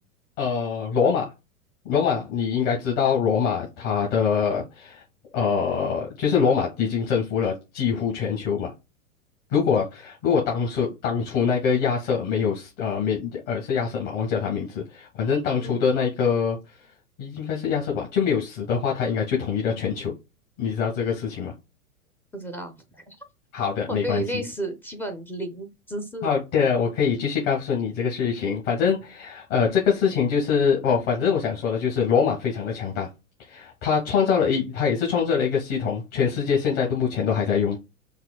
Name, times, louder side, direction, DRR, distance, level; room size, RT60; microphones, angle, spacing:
voice 1, 0.4-1.3 1.9-5.0 5.3-8.7 9.5-16.6 17.2-20.1 20.6-21.5 23.5-24.4 26.2-33.1 33.5-37.8, left 6 dB, 50° left, 1.8 m, -24 dB
voice 2, 22.3-22.7 23.1-23.2 23.9-26.3, right 1 dB, 5° left, 0.4 m, -32 dB
5.7 x 2.2 x 2.3 m
hypercardioid pair, 100°, 42 cm